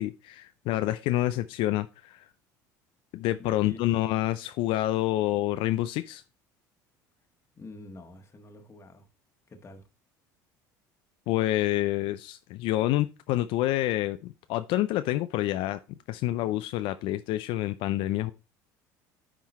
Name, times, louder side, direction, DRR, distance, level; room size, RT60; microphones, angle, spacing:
voice 1, 0.0-2.3 3.1-6.2 11.3-15.8 16.1-18.3, left 15 dB, 65° left, 0.5 m, -28 dB
voice 2, 3.4-3.8 7.6-9.0 9.5-9.8, left 2 dB, 25° left, 1.5 m, -46 dB
9.4 x 3.8 x 4.2 m
hypercardioid pair, 75°, 10 cm